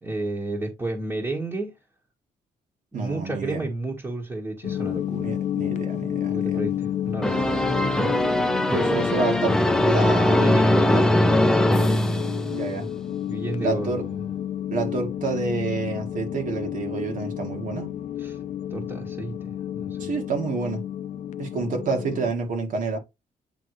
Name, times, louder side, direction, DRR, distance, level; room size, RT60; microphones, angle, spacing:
voice 1, 0.0-1.7 2.9-5.3 6.3-8.3 10.3-11.1 13.3-14.2 18.2-18.4 18.7-20.1, right 2 dB, 15° right, 1.5 m, -32 dB
voice 2, 2.9-3.6 5.1-6.6 8.7-9.6 9.8-10.4 10.9-11.1 12.5-12.9 13.6-14.1 14.7-17.9 20.0-20.8 21.4-23.0, right 4 dB, 60° right, 2.0 m, -28 dB
sound 1, 4.6-22.3, left 11 dB, 55° left, 0.6 m, -31 dB
sound 2, 7.2-12.9, left 1 dB, 5° left, 0.6 m, -21 dB
8.9 x 3.6 x 3.1 m
cardioid pair, 145°, 15 cm